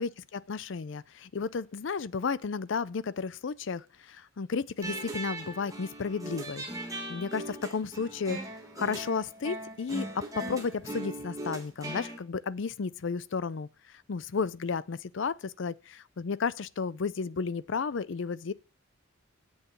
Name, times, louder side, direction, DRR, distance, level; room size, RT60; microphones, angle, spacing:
voice 1, 0.0-8.4 8.8-13.7 14.1-18.5, left 5 dB, 60° left, 0.5 m, -33 dB
sound 1, 4.8-12.2, right 1 dB, 15° right, 2.0 m, -39 dB
8.0 x 6.8 x 8.3 m
head